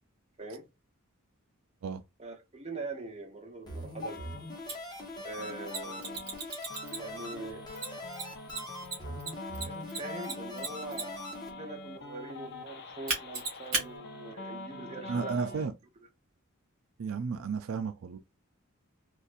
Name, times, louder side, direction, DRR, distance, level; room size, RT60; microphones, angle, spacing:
voice 1, 2.2-4.2 5.2-6.4 6.9-7.7 9.6-11.2 11.5-15.7, right 3 dB, 30° right, 0.9 m, -42 dB
sound 1, 3.7-11.5, left 1 dB, 20° left, 1.2 m, -43 dB
sound 2, 4.0-15.7, left 2 dB, 55° left, 0.7 m, -45 dB
Mechanisms, 4.7-4.8 5.7-7.2 7.8-11.3 13.1-13.9, right 3 dB, 50° right, 2.1 m, -35 dB
voice 2, 15.1-15.7 17.0-18.2, right 5 dB, 80° right, 0.4 m, -33 dB
4.1 x 2.5 x 2.4 m
head